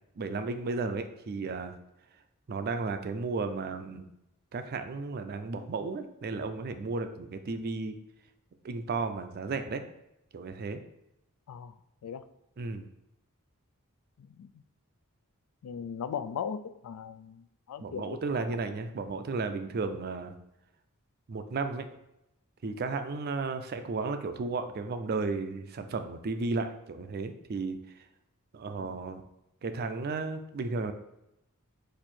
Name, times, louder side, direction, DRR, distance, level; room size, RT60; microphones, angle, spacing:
voice 1, 0.2-1.7 2.5-4.1 4.5-8.0 8.6-9.8 10.3-10.8 12.6-12.9 17.8-20.3 21.3-21.9 22.6-27.8 28.5-29.2 29.6-30.9, right 3 dB, 45° right, 9 dB, 0.4 m, -34 dB
voice 2, 14.2-14.6 15.6-18.6 28.8-28.9, left 7 dB, 90° left, 11 dB, 0.3 m, -39 dB
4.4 x 2.6 x 4.2 m, 0.85 s
head